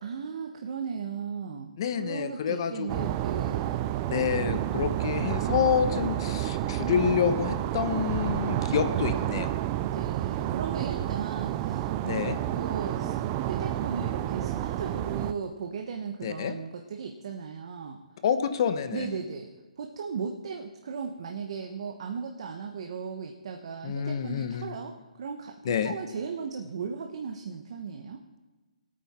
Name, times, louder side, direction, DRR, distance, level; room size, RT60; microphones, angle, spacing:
voice 1, 0.0-1.7 2.0-3.9 9.9-13.1 13.4-18.0 18.9-19.5 19.8-28.2, right 6 dB, 45° right, 3 dB, 1.1 m, -36 dB
voice 2, 1.8-3.1 4.1-9.5 12.0-12.4 16.2-16.5 18.2-19.1 23.8-24.7 25.6-25.9, left 8 dB, 35° left, 11 dB, 0.9 m, -28 dB
sound 1, 2.9-15.3, right 13 dB, 20° right, 0.4 m, -30 dB
19.0 x 8.7 x 4.3 m, 1.2 s
hypercardioid pair, 165°, 4 cm